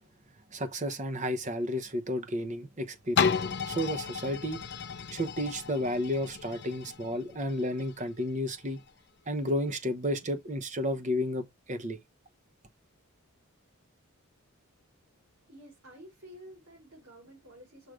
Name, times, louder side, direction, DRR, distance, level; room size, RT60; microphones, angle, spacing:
voice 1, 0.5-3.4 3.7-4.6 5.1-8.8 9.3-12.0, left 1 dB, 30° right, 0.8 m, -32 dB
sound 1, 3.2-8.9 9.5-9.6, left 6 dB, 50° left, 0.6 m, -33 dB
voice 2, 15.3-17.9, equal, 75° right, 4.4 m, -51 dB
6.4 x 3.2 x 4.8 m
head